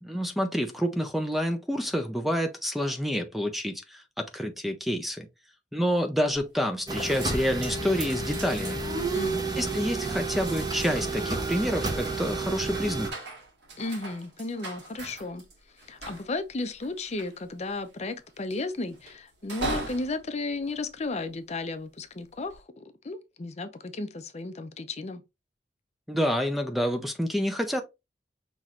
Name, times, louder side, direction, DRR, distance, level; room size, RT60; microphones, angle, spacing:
voice 1, 0.0-5.3 5.7-8.8 9.5-13.1 26.1-27.8, equal, ahead, 0.5 m, -28 dB
sound 1, 6.3-6.8 7.1-21.6 22.2-22.6, right 2 dB, 75° right, 1.8 m, -41 dB
sound 2, 6.9-13.1, right 3 dB, 25° right, 0.9 m, -31 dB
voice 2, 9.1-9.5 13.8-15.4 15.9-25.2, left 3 dB, 40° left, 0.6 m, -34 dB
5.7 x 3.1 x 2.4 m
head